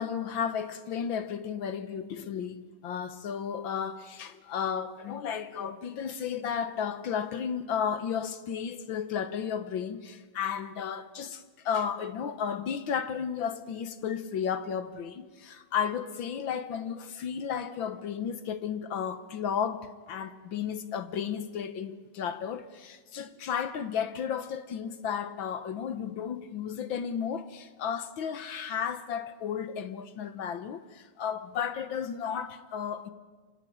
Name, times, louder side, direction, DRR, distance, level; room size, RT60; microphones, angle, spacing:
voice 1, 0.0-33.1, left 7 dB, 65° left, 1.3 m, -33 dB
26.5 x 16.5 x 10.0 m
omnidirectional pair, 3.3 m